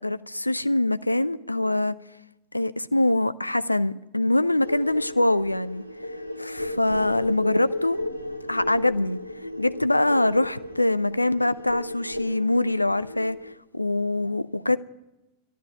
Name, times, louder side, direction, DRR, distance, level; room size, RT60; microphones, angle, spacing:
voice 1, 0.0-1.9 2.5-5.8 6.4-8.0 8.5-9.2 9.6-13.4 13.7-14.8, left 2 dB, 85° left, 0.5 m, -24 dB
sound 1, 4.6-13.5, left 1 dB, 85° right, 1.0 m, -34 dB
12.5 x 10.0 x 9.4 m
figure-of-eight pair, 90°, 0 cm